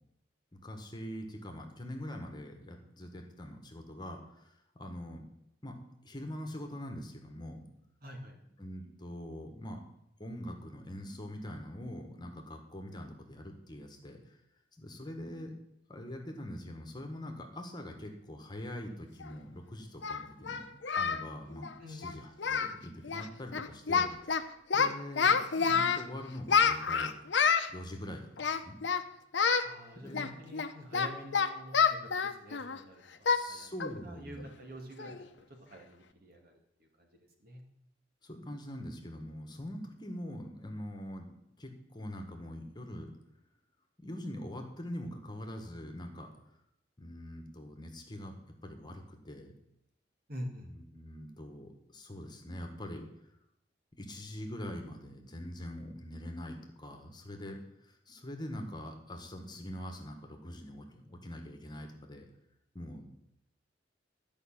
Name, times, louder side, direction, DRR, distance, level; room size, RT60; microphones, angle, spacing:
voice 1, 0.5-5.2 5.6-5.8 6.0-7.6 8.6-9.8 10.2-14.4 14.8-15.5 15.9-20.6 20.9-24.3 24.7-27.1 27.7-28.7 30.0-30.3 33.2-34.4 38.2-43.1 44.0-46.3 47.0-48.4 48.6-49.5 50.6-53.4 53.9-62.3 62.7-63.1, left 1 dB, 25° left, 3 dB, 1.5 m, -43 dB
voice 2, 8.0-8.3 21.8-22.2 29.6-33.7 34.0-37.6 50.3-50.7, equal, 55° right, 2 dB, 2.3 m, -47 dB
Singing, 19.2-19.3 20.0-21.2 21.5-21.7 22.0-22.1 22.4-22.8 23.0-23.3 23.5-24.4 24.7-26.0 26.5-27.7 28.4-29.0 29.3-29.7 30.1-32.8 33.3-33.5 33.8-34.0 34.4-34.5 35.0-35.3, left 6 dB, 75° left, 0.8 m, -28 dB
12.0 x 5.5 x 8.8 m, 0.83 s
head